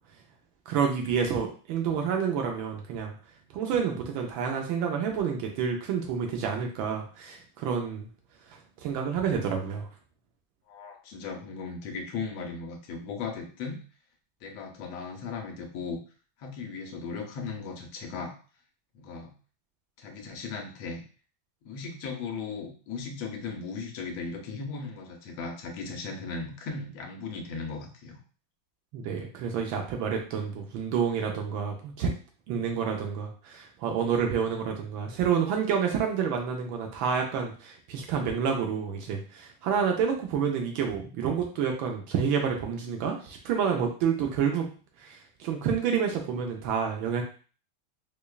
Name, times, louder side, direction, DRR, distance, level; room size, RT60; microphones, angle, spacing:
voice 1, 0.7-3.1 3.5-8.1 8.8-9.9 28.9-32.1 32.5-44.7 45.0-47.2, right 7 dB, 80° right, 2 dB, 1.3 m, -29 dB
voice 2, 10.7-13.8 14.4-16.0 16.4-18.3 18.9-19.3 20.0-21.0 21.6-28.2, left 4 dB, 90° left, 2 dB, 1.5 m, -37 dB
5.0 x 2.2 x 2.3 m, 0.39 s
omnidirectional pair, 2.2 m